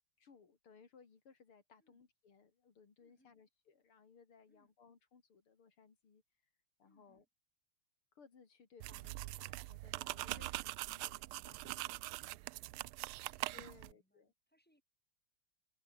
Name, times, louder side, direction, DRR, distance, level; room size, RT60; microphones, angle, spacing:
voice 1, 0.2-6.2 6.8-7.2 8.1-12.7 13.5-14.3, left 5 dB, 90° left, 3.9 m, -63 dB
voice 2, 3.0-3.4 4.5-4.7 6.8-7.3 13.1-14.8, equal, 5° left, 7.9 m, -76 dB
sound 1, 8.8-13.9, right 19 dB, 85° right, 1.5 m, -43 dB
omnidirectional pair, 2.3 m